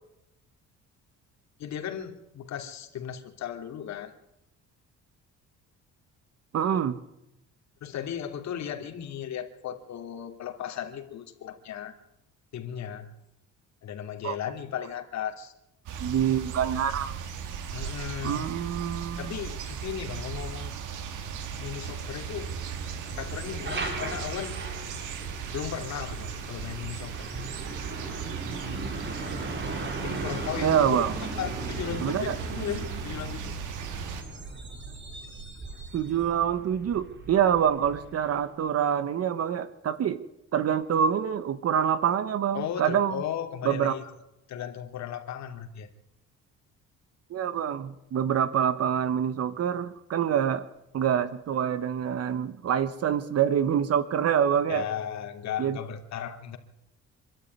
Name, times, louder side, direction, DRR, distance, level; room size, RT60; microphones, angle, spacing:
voice 1, 1.6-4.1 7.8-11.9 12.5-13.1 13.8-15.5 17.7-18.5 19.2-20.7 21.3-22.5 23.2-24.6 25.5-27.5 30.0-31.1 31.4-33.5 42.5-44.1 44.5-45.9 54.7-56.6, left 9 dB, 65° left, 5 dB, 2.9 m, -36 dB
voice 2, 6.5-7.0 14.2-14.4 16.0-17.2 18.2-19.3 30.6-31.1 32.0-32.3 35.9-40.2 40.5-43.2 43.6-43.9 47.3-50.7 50.9-54.8 55.6-55.8, right 9 dB, 55° right, 13 dB, 1.3 m, -26 dB
sound 1, 15.9-34.2, right 7 dB, 85° right, 2.8 m, -37 dB
Truck, 20.9-38.5, right 2 dB, 40° right, 4.6 m, -38 dB
25.5 x 12.5 x 9.4 m, 0.87 s
cardioid pair, 120°, 30 cm